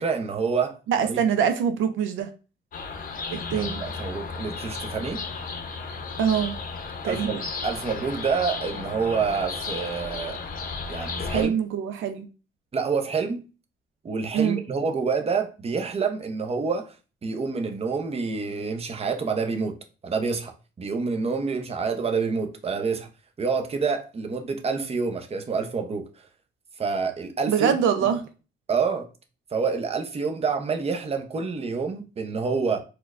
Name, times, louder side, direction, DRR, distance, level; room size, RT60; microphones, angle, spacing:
voice 1, 0.0-1.2 3.5-5.2 7.0-10.4 10.9-11.6 12.7-13.4 14.0-17.0 17.2-19.7 20.0-23.1 23.4-26.0 26.8-27.8 28.7-29.1 29.5-32.8, right 5 dB, 30° right, 0.6 m, -27 dB
voice 2, 0.9-2.3 3.3-3.8 6.2-6.6 7.0-7.4 10.9-11.1 11.3-12.3 14.3-14.6 27.5-28.2, right 8 dB, 85° right, 0.5 m, -24 dB
sound 1, 2.7-11.5, left 4 dB, 45° left, 0.7 m, -34 dB
4.3 x 2.2 x 2.4 m
cardioid pair, 90°, 20 cm